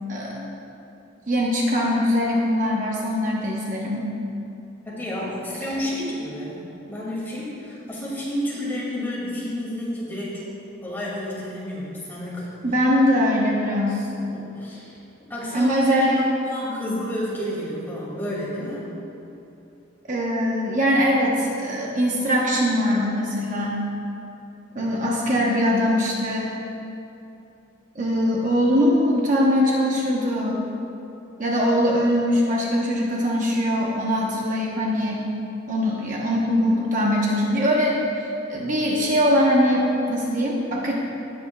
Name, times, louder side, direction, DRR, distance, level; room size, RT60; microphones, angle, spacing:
voice 1, 0.1-0.5 1.3-4.0 12.6-14.1 15.5-16.1 20.1-23.8 24.7-26.5 27.9-30.6 31.4-35.2 35.7-40.9, equal, 40° right, -3 dB, 1.0 m, -22 dB
voice 2, 4.8-6.6 6.9-10.6 10.8-12.5 14.3-19.0, equal, 10° left, -7 dB, 2.3 m, -30 dB
18.0 x 7.8 x 2.3 m, 2.8 s
head